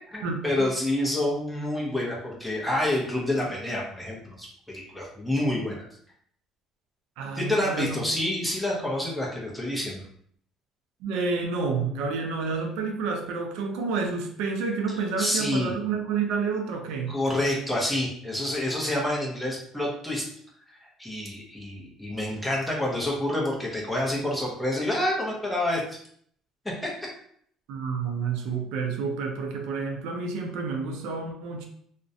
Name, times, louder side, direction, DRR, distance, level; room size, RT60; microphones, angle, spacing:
voice 1, 0.1-5.8 7.4-10.0 15.2-15.7 17.1-20.3 20.7-26.0 26.6-26.9, left 1 dB, 5° left, -3 dB, 0.6 m, -28 dB
voice 2, 7.2-8.0 11.0-17.2 27.7-31.6, right 4 dB, 85° right, 3 dB, 0.4 m, -29 dB
2.4 x 2.1 x 2.6 m, 0.64 s
cardioid pair, 155°, 0 cm